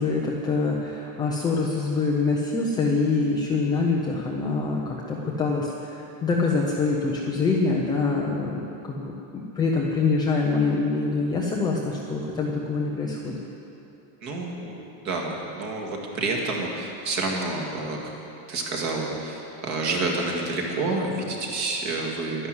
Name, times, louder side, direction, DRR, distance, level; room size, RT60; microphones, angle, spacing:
voice 1, 0.0-9.1 9.6-13.3, left 3 dB, 10° left, -3 dB, 0.4 m, -25 dB
voice 2, 14.2-18.1 18.5-22.5, right 2 dB, 35° right, 0 dB, 2.1 m, -29 dB
12.0 x 11.0 x 7.8 m, 2.9 s
supercardioid pair, 170°, 47 cm